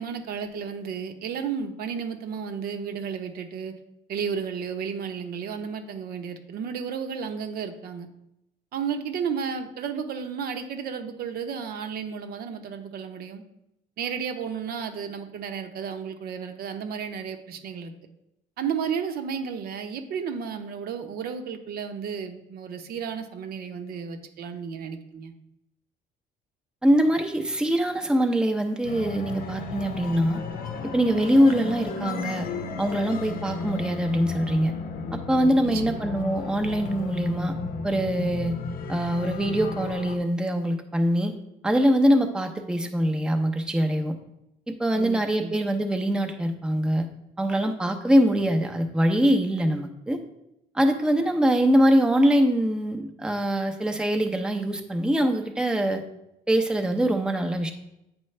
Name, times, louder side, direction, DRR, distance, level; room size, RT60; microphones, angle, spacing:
voice 1, 0.0-3.7 4.1-8.1 8.7-13.4 14.0-17.9 18.6-25.3 35.6-36.0 44.9-45.5, right 6 dB, 65° right, 6 dB, 0.8 m, -33 dB
voice 2, 26.8-30.4 30.9-32.5 32.8-34.7 35.1-37.6 37.8-38.6 38.9-41.3 41.6-44.2 44.7-47.1 47.4-50.2 50.7-56.0 56.5-57.7, equal, 5° right, 4 dB, 0.7 m, -23 dB
sound 1, 28.8-40.2, left 4 dB, 60° left, 0.8 m, -34 dB
8.7 x 4.5 x 3.3 m, 0.84 s
cardioid pair, 110°, 17 cm